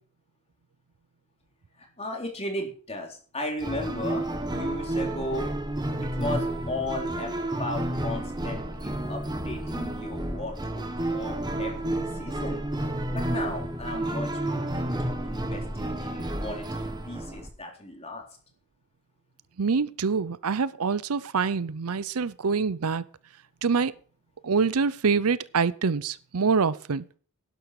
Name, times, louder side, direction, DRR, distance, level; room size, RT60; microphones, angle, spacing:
voice 1, 1.8-5.5 6.0-7.3 7.6-12.6 13.1-18.2, left 1 dB, 30° left, 3.8 m, -36 dB
sound 1, 3.6-17.5, right 1 dB, 20° right, 1.4 m, -31 dB
voice 2, 19.6-23.0 23.6-23.9 24.4-27.0, right 5 dB, 80° right, 0.6 m, -25 dB
11.5 x 11.0 x 4.8 m
head